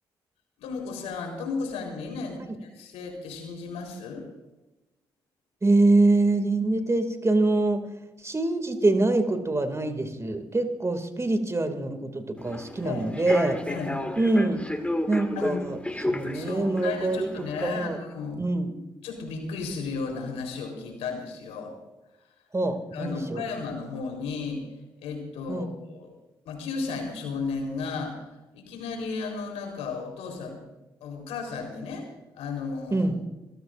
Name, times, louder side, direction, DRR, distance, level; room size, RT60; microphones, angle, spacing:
voice 1, 0.6-4.3 12.8-13.0 13.7-14.0 15.4-15.6 16.3-18.4 19.0-21.7 22.9-24.6 25.0-26.1 26.5-28.3 28.5-30.6 31.0-32.1 32.3-33.1, left 4 dB, 80° left, 2 dB, 4.1 m, -34 dB
voice 2, 5.6-7.9 8.2-13.6 14.2-14.7 15.1-15.8 16.1-18.0 18.4-18.7 22.5-23.4 25.5-25.7 32.9-33.2, right 2 dB, 25° right, 7 dB, 2.5 m, -25 dB
Human voice / Subway metro underground, 12.4-17.8, left 1 dB, 10° left, 2.1 m, -33 dB
27.0 x 16.5 x 2.6 m, 1.0 s
hypercardioid pair, 45°, 11 cm